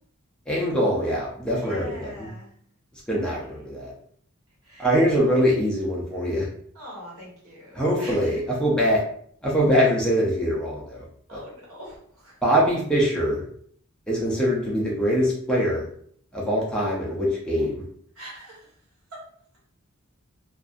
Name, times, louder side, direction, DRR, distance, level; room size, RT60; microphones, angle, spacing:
voice 1, 0.5-2.3 3.1-3.9 4.8-6.5 7.7-9.0 9.4-11.0 12.4-13.4 14.1-15.9 16.3-17.8, equal, 5° left, -5 dB, 0.4 m, -23 dB
voice 2, 1.5-2.5 3.3-3.7 4.6-5.3 6.7-8.4 11.3-12.4 18.1-18.8 19.1-19.2, equal, 75° right, -5 dB, 1.2 m, -42 dB
2.6 x 2.3 x 2.4 m, 0.62 s
head